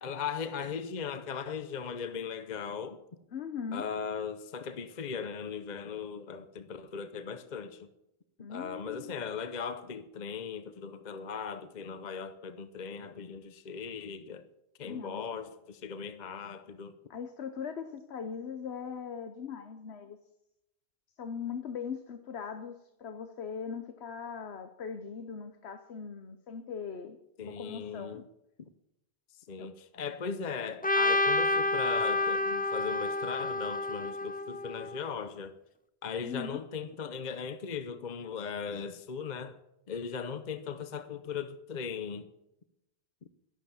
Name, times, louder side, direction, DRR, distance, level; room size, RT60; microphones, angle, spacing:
voice 1, 0.0-3.0 3.7-7.9 8.5-14.5 14.8-17.0 27.4-28.2 28.6-28.7 29.5-35.6 36.0-39.6 39.9-42.3, left 6 dB, 45° left, 0.9 m, -38 dB
voice 2, 3.3-3.9 8.4-9.2 14.8-15.3 17.1-20.2 21.2-27.2 27.4-28.2 29.6-29.7 36.2-36.6, left 6 dB, 75° left, 1.2 m, -40 dB
Trumpet, 30.8-35.0, left 2 dB, 10° left, 0.4 m, -29 dB
12.0 x 11.5 x 7.0 m
omnidirectional pair, 1.1 m